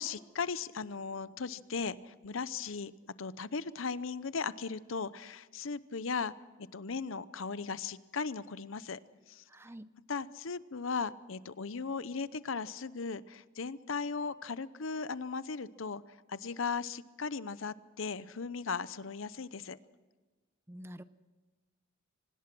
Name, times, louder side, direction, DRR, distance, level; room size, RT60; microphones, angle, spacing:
voice 1, 0.0-2.9 3.2-6.3 6.6-9.0 9.3-9.4 10.1-19.8, left 5 dB, 75° left, 16 dB, 0.8 m, -37 dB
voice 2, 9.5-9.9 20.7-21.0, equal, 10° right, 13 dB, 0.6 m, -47 dB
25.5 x 19.5 x 6.1 m, 1.3 s
head